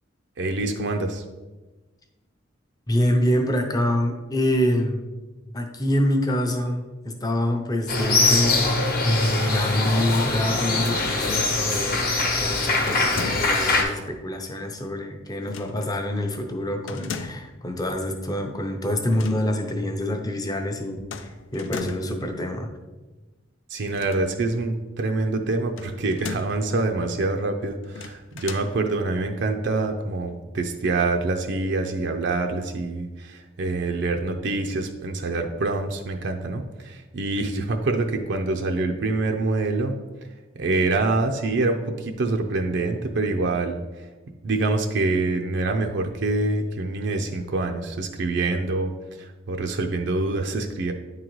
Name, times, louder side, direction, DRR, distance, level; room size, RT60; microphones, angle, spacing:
voice 1, 0.4-1.2 23.7-40.0 40.6-44.1 44.4-48.9 49.2-50.9, right 2 dB, 60° right, 4 dB, 0.5 m, -25 dB
voice 2, 2.9-5.0 5.5-8.7 9.0-22.7, left 1 dB, 20° left, 4 dB, 0.6 m, -26 dB
sound 1, 7.9-13.8, left 3 dB, 50° left, 1.0 m, -23 dB
sound 2, 11.2-11.9 12.9-13.8 15.4-15.9 16.9-17.6 19.0-19.4 19.7-19.8 21.1-22.2 23.8-24.6 25.8-26.7 27.8-28.7, left 5 dB, 75° left, 0.4 m, -37 dB
9.1 x 3.8 x 3.1 m, 1.2 s
head